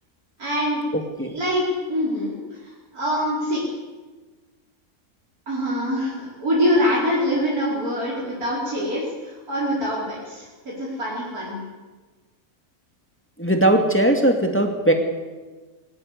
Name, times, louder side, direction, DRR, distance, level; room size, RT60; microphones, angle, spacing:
voice 1, 0.4-0.8 1.2-2.4 2.9-3.6 5.5-11.6, equal, 75° right, -6 dB, 5.2 m, -24 dB
voice 2, 0.9-1.4 13.4-14.9, right 1 dB, 10° left, 3 dB, 2.3 m, -19 dB
22.0 x 19.5 x 8.3 m, 1.3 s
omnidirectional pair, 1.6 m